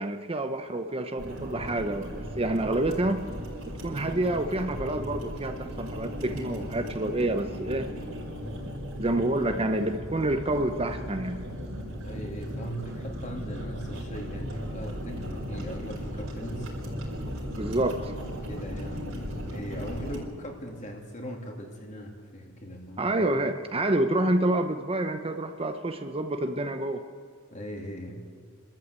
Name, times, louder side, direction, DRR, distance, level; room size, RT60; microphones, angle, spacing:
voice 1, 0.0-3.2 3.8-7.9 9.0-11.4 17.6-18.1 23.0-27.0, right 1 dB, 30° right, 7 dB, 0.9 m, -28 dB
sound 1, 1.2-20.2, equal, 70° right, 4.8 m, -36 dB
voice 2, 12.0-16.7 18.2-23.1 27.5-28.2, equal, 35° left, 1 dB, 3.1 m, -39 dB
25.0 x 13.5 x 8.1 m, 2.2 s
head